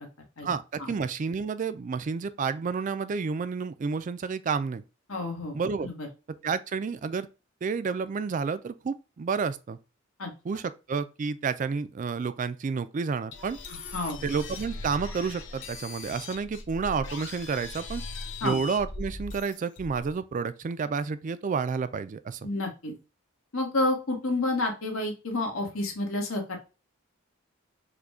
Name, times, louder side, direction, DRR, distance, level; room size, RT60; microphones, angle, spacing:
voice 1, 0.4-4.8 5.5-5.9 6.4-7.3 7.6-9.8 10.4-13.6 14.2-18.0 18.4-22.4, right 5 dB, 40° right, 0.3 m, -30 dB
voice 2, 5.1-5.6 5.8-6.1 10.2-10.3 13.9-14.2 18.4-18.6 22.4-22.9 23.5-26.6, left 2 dB, 90° left, 1.5 m, -29 dB
sound 1, 13.3-20.1, left 3 dB, 60° left, 1.0 m, -39 dB
4.8 x 2.2 x 4.8 m
head